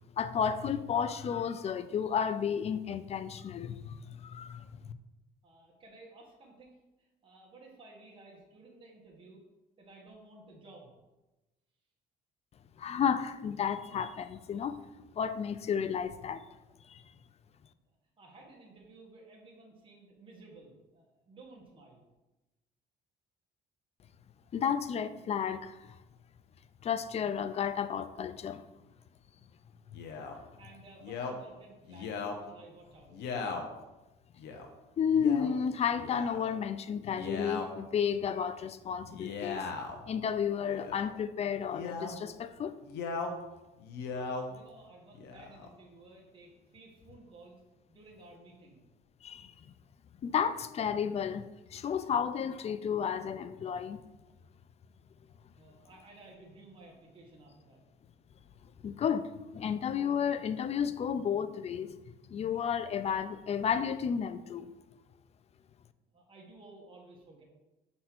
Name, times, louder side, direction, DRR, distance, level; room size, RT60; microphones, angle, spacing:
voice 1, 0.2-4.9 12.8-14.8 15.1-16.4 16.9-17.0 24.5-25.9 26.8-28.6 35.0-39.6 40.1-42.8 49.2-49.5 50.2-51.4 51.7-54.0 58.8-61.9 62.3-64.7, left 7 dB, 40° left, 0.4 m, -32 dB
voice 2, 5.4-9.4 9.8-10.9 17.9-22.0 30.6-33.4 44.4-47.6 47.9-48.9 55.6-57.8 66.1-67.4, right 2 dB, 30° right, 1.6 m, -55 dB
Male speech man speaking, 29.9-30.4 31.0-31.3 31.9-32.4 33.1-33.6 34.4-34.6 35.1-35.5 35.9-36.5 37.0-37.7 39.0-40.0 40.6-41.1 41.7-42.2 42.8-43.3 43.8-44.4 45.1-45.7, left 4 dB, 80° left, 1.0 m, -38 dB
5.5 x 4.3 x 6.0 m
cardioid pair, 110°, 17 cm